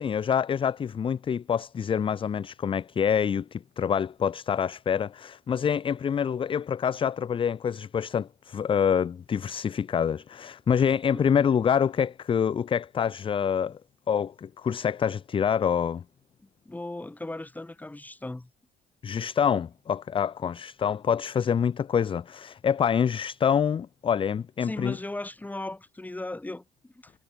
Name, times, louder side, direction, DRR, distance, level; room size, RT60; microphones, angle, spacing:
voice 1, 0.0-13.8 14.1-16.0 19.0-25.0, left 7 dB, 30° left, 0.6 m, -26 dB
voice 2, 11.1-11.4 16.4-18.5 24.6-27.1, left 2 dB, 10° left, 2.0 m, -37 dB
cardioid pair, 110°, 17 cm